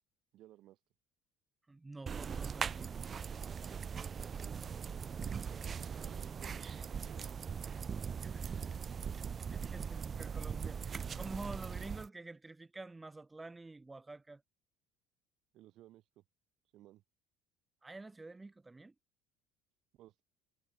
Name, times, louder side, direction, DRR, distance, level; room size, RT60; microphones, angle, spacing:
voice 1, 0.3-0.8 5.5-7.4 15.5-16.2 16.7-17.0 19.9-20.2, right 15 dB, 60° right, 2.1 m, -59 dB
voice 2, 1.7-2.9 8.2-9.1 9.5-14.4 17.8-18.9, right 2 dB, 15° right, 0.8 m, -49 dB
sound 1, 2.1-12.1, right 6 dB, 30° right, 0.4 m, -40 dB
cardioid pair, 120°, 0 cm